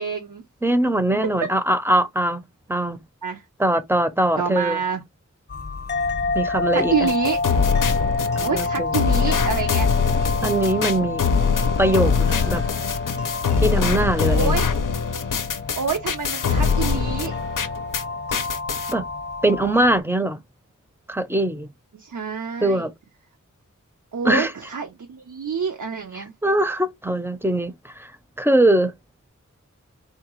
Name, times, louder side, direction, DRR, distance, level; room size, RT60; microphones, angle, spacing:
voice 1, 0.0-0.4 3.2-3.4 4.4-5.0 6.7-7.4 8.4-9.9 14.3-14.7 15.8-17.4 21.9-22.9 24.1-26.3, right 6 dB, 75° right, 0.6 m, -27 dB
voice 2, 0.6-2.4 2.7-3.0 3.6-4.8 6.3-7.1 8.4-9.0 10.4-11.2 11.8-12.6 13.6-14.6 18.9-19.0 19.4-20.4 21.1-21.7 22.6-22.9 24.2-24.5 26.1-28.1 28.4-28.9, right 1 dB, 10° right, 0.5 m, -21 dB
sound 1, 5.5-20.0, left 3 dB, 35° left, 0.7 m, -29 dB
sound 2, 7.1-18.0 18.3-18.9, left 6 dB, 90° left, 0.5 m, -23 dB
3.7 x 2.2 x 3.0 m
wide cardioid pair, 55°, 31 cm